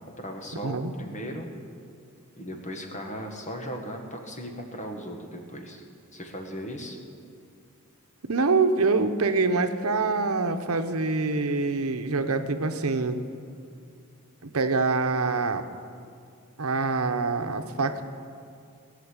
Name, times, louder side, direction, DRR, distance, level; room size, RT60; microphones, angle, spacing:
voice 1, 0.2-1.5 2.4-5.8 6.1-7.0, equal, 35° left, 3 dB, 1.7 m, -37 dB
voice 2, 8.2-13.2 14.4-15.6 16.6-18.0, right 3 dB, 75° right, 7 dB, 0.9 m, -25 dB
19.0 x 6.7 x 9.6 m, 2.3 s
head